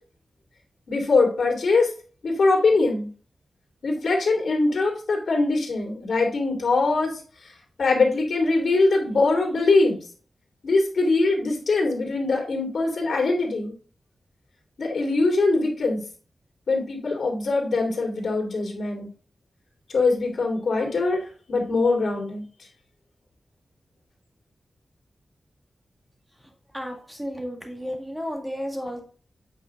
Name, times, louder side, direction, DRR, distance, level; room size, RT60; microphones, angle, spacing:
voice 1, 0.9-1.9 2.2-3.1 3.8-7.1 7.8-10.0 10.6-13.7 14.8-16.0 16.7-19.1 19.9-21.2 21.5-22.4, left 3 dB, 65° left, 0 dB, 2.6 m, -22 dB
voice 2, 26.7-29.0, equal, 5° right, 1 dB, 1.8 m, -32 dB
8.5 x 5.2 x 3.8 m, 0.41 s
wide cardioid pair, 165°, 0 cm